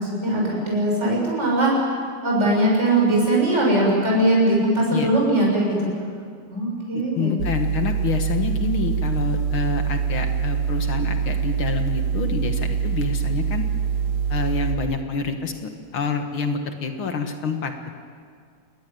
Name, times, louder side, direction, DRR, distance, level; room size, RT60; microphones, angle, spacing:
voice 1, 0.0-1.7 2.2-5.9 6.5-7.3, right 1 dB, 30° right, -3 dB, 7.1 m, -20 dB
voice 2, 6.9-13.6 14.3-17.9, left 5 dB, 70° left, 5 dB, 2.4 m, -27 dB
sound 1, 7.4-14.7, right 7 dB, 85° right, 4.1 m, -24 dB
28.5 x 20.5 x 9.4 m, 2.2 s
omnidirectional pair, 2.4 m